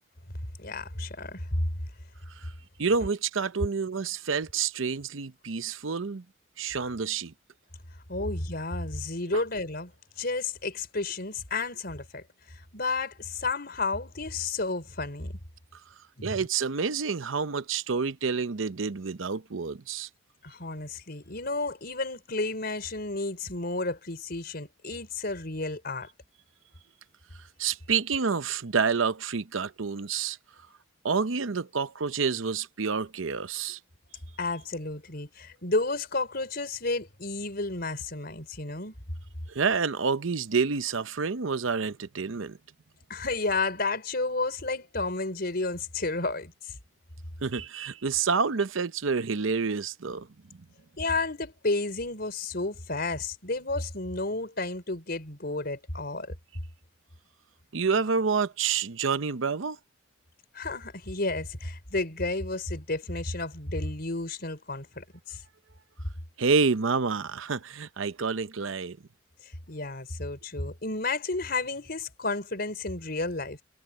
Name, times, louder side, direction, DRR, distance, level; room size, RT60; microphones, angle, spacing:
voice 1, 0.6-1.7 8.1-9.9 10.2-12.2 12.5-15.4 16.2-16.4 20.4-26.1 34.4-38.9 43.1-46.8 51.0-56.3 60.5-65.4 69.4-73.6, left 3 dB, 50° left, 4.7 m, -32 dB
voice 2, 2.8-6.2 6.6-7.3 16.2-20.1 27.6-30.4 31.0-33.8 39.5-42.6 47.4-50.3 57.7-59.8 66.4-69.0, right 5 dB, 90° right, 0.8 m, -28 dB
head